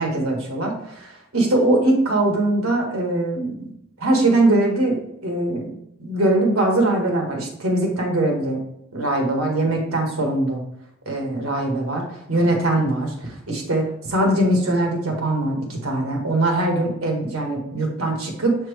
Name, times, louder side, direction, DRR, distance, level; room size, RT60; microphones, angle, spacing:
voice 1, 0.0-3.7 4.0-5.7 6.0-8.6 8.9-10.6 11.0-18.6, right 2 dB, 85° right, 1 dB, 1.6 m, -21 dB
7.1 x 4.3 x 3.3 m, 0.76 s
head